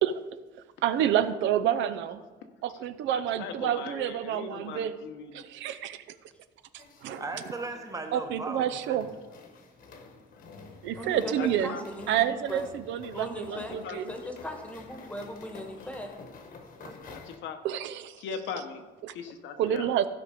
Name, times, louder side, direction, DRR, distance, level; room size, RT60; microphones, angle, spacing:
voice 1, 0.8-2.2 2.6-4.9 5.3-6.0 6.7-7.2 8.1-9.1 10.8-11.8 12.1-14.1 17.6-18.2 19.0-19.1 19.6-20.1, right 10 dB, 80° right, 12 dB, 0.6 m, -28 dB
voice 2, 3.1-5.5 11.2-11.8 13.5-14.0 15.8-15.9 17.1-17.6 18.2-18.8 19.1-19.9, left 6 dB, 75° left, 7 dB, 1.0 m, -40 dB
sound 1, 6.8-17.4, left 4 dB, 50° left, 1.2 m, -49 dB
voice 3, 7.2-9.1 16.8-17.2, right 3 dB, 20° right, 5 dB, 1.0 m, -38 dB
voice 4, 11.0-12.7 13.1-16.1, left 1 dB, 5° left, 4 dB, 1.2 m, -39 dB
15.5 x 5.3 x 5.0 m, 1.3 s
cardioid pair, 165°, 19 cm